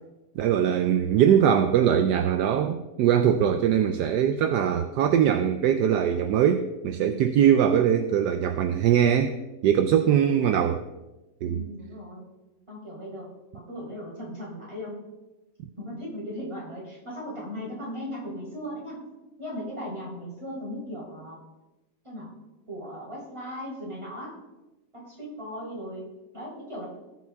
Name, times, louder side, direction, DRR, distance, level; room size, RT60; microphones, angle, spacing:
voice 1, 0.4-9.3 9.6-10.8 11.4-11.6, right 9 dB, 75° right, 7 dB, 1.1 m, -22 dB
voice 2, 7.0-7.4 9.9-10.4 11.4-12.2 12.7-13.3 13.5-15.0 15.8-19.0 19.4-21.4 22.0-22.3 22.7-24.3 24.9-26.1 26.3-26.9, equal, 15° right, -5 dB, 4.0 m, -37 dB
18.5 x 6.3 x 3.5 m, 1.0 s
omnidirectional pair, 2.0 m